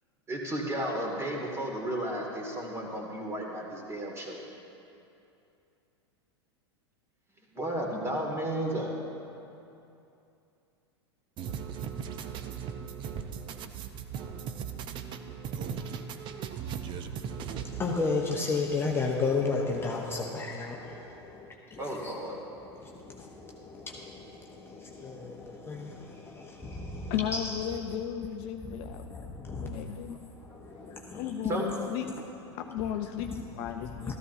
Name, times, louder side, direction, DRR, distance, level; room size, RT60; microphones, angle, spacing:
voice 1, 0.3-4.4 7.5-8.9 12.2-12.3 14.1-14.3 16.9-17.0 21.8-22.4 30.7-30.8 31.5-31.6, right 1 dB, 20° right, 0 dB, 2.1 m, -33 dB
sound 1, 11.4-18.0, right 7 dB, 35° right, 0.6 m, -37 dB
voice 2, 17.4-22.2 22.6-27.8 28.6-31.3 31.7-32.2 32.5-32.7 33.3-33.5 33.8-34.1, left 4 dB, 15° left, -1 dB, 1.0 m, -34 dB
voice 3, 27.1-29.0 29.6-30.3 30.9-32.1 32.5-34.1, left 10 dB, 45° left, 6 dB, 0.6 m, -35 dB
14.0 x 13.5 x 2.7 m, 2.7 s
figure-of-eight pair, 95°, 14 cm